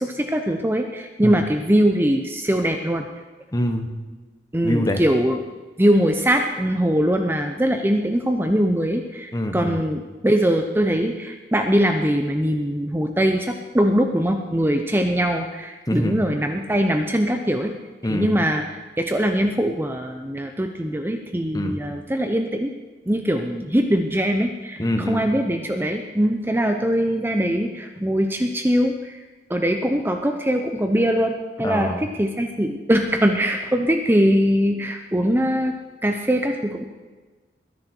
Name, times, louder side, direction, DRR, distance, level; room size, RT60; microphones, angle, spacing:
voice 1, 0.0-3.1 4.5-5.4 5.8-17.7 18.1-22.7 23.1-24.8 25.1-29.2 29.5-35.8 36.0-36.8, equal, 10° right, 5 dB, 0.7 m, -22 dB
voice 2, 3.5-3.9 4.6-5.0 9.3-9.8 15.9-16.2 18.0-18.3 21.5-21.8 24.8-25.3 31.6-32.0, left 1 dB, 20° left, 6 dB, 1.3 m, -24 dB
22.0 x 10.5 x 4.5 m, 1.3 s
head